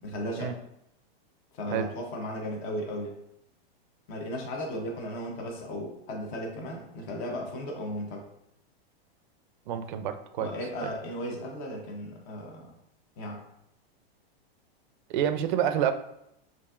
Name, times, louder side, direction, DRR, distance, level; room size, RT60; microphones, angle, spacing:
voice 1, 0.0-0.6 1.5-3.1 4.1-8.3 10.4-12.7 13.2-13.5, equal, 30° left, 1 dB, 0.7 m, -35 dB
voice 2, 9.7-10.5 10.8-10.9 15.1-15.9, right 9 dB, 50° right, 9 dB, 0.5 m, -28 dB
6.8 x 2.6 x 2.4 m, 0.79 s
supercardioid pair, 155°, 31 cm